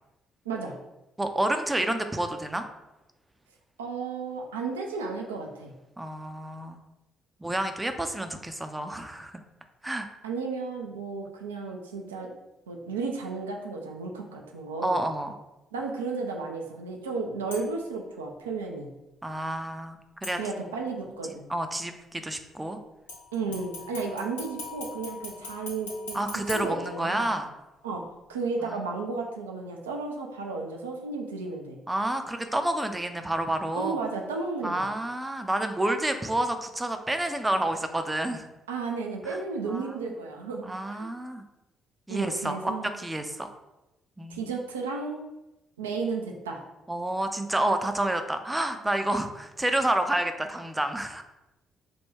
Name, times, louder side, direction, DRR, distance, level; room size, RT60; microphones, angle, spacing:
voice 1, 0.5-0.8 3.8-5.7 10.2-12.3 12.7-15.0 15.7-18.9 20.4-21.5 23.3-27.3 27.8-31.8 33.7-34.8 38.7-41.1 42.1-42.9 44.3-45.3 45.8-46.6, right 4 dB, 85° right, 1 dB, 0.3 m, -33 dB
voice 2, 1.2-2.6 6.0-6.8 7.4-9.3 9.8-10.1 14.8-15.3 19.2-20.4 21.5-22.8 26.1-27.5 28.6-28.8 31.9-34.0 34.6-38.5 39.7-40.1 40.7-41.4 42.1-43.5 44.2-44.5 46.9-51.2, right 1 dB, 15° right, 7 dB, 0.4 m, -29 dB
sound 1, 17.5-17.9 20.2-20.9 23.1-27.5 27.9-28.0, left 3 dB, 85° left, 0.7 m, -42 dB
2.9 x 2.1 x 3.6 m, 0.98 s
figure-of-eight pair, 45°, 0 cm